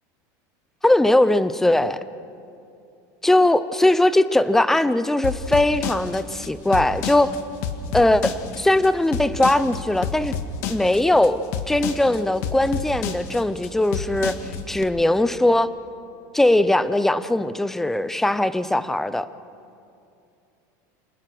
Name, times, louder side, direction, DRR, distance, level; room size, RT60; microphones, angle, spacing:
voice 1, 0.8-2.0 3.2-7.4 7.9-10.3 10.7-11.4 11.7-14.4 14.7-15.7 16.3-19.3, left 1 dB, 5° left, 14 dB, 0.5 m, -20 dB
sound 1, 5.2-14.8, left 7 dB, 65° left, 1.7 m, -29 dB
27.0 x 19.5 x 6.1 m, 2.6 s
supercardioid pair, 155°, 9 cm